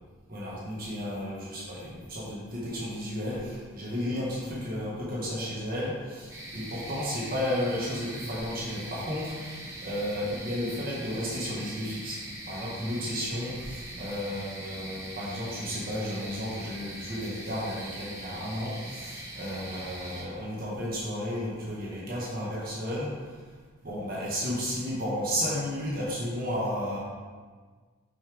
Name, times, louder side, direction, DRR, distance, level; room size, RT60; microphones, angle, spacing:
voice 1, 0.3-12.2 12.5-23.1 23.8-27.0, equal, 45° right, -6 dB, 1.5 m, -33 dB
sound 1, 6.3-20.2, right 1 dB, 15° right, 1.0 m, -42 dB
6.3 x 5.7 x 3.5 m, 1.5 s
head